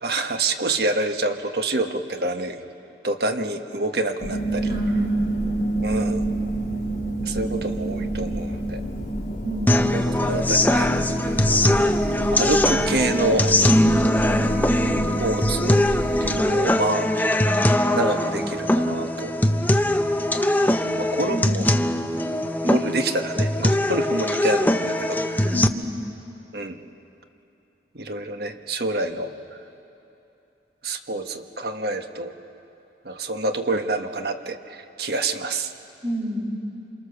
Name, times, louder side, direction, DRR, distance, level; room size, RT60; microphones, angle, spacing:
voice 1, 0.0-2.6 3.0-4.7 5.8-6.4 7.2-8.8 10.2-10.9 11.5-11.9 12.4-13.6 15.2-15.8 16.2-17.5 17.9-19.3 19.9-20.0 20.3-21.6 22.6-25.5 26.5-26.8 27.9-29.3 30.8-32.3 33.0-35.7, right 2 dB, 60° right, 6 dB, 1.4 m, -27 dB
sound 1, 4.2-16.4, right 1 dB, 45° left, 3.2 m, -28 dB
voice 2, 4.7-5.3 9.4-9.9 14.2-14.9 21.3-21.8 25.5-25.8 36.0-36.6, equal, 25° right, -2 dB, 3.5 m, -29 dB
sound 2, 9.7-25.7, left 1 dB, 10° left, 0.7 m, -21 dB
28.0 x 26.5 x 6.9 m, 2.8 s
head